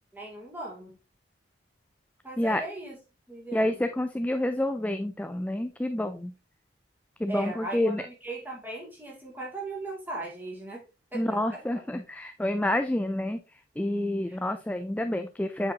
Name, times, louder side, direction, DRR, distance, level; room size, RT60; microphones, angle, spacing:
voice 1, 0.1-1.0 2.2-3.0 3.3-3.8 7.3-10.8 11.1-11.6 14.3-14.4, right 2 dB, 10° right, -3 dB, 2.4 m, -38 dB
voice 2, 3.5-6.3 7.2-8.0 11.1-13.4 13.8-15.7, left 1 dB, 10° left, 8 dB, 0.3 m, -28 dB
8.5 x 5.0 x 2.8 m, 0.29 s
head